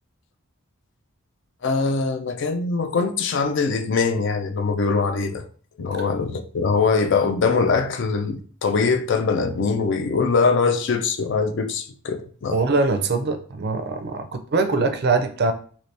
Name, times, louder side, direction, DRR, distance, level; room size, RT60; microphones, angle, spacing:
voice 1, 1.6-5.4 5.8-12.6, left 4 dB, 55° left, 0.4 m, -22 dB
voice 2, 12.5-15.5, right 3 dB, 45° right, 0.4 m, -22 dB
2.9 x 2.7 x 3.2 m
head